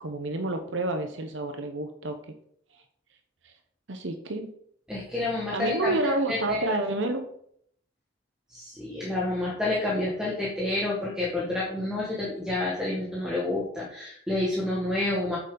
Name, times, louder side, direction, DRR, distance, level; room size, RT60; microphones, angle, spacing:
voice 1, 0.0-2.2 2.7-2.8 3.4-3.5 3.9-4.5 5.5-7.3, right 2 dB, 70° right, 6 dB, 0.8 m, -29 dB
voice 2, 4.9-6.8 8.5-15.4, left 2 dB, 5° right, -5 dB, 1.7 m, -29 dB
8.7 x 6.9 x 3.9 m, 0.66 s
head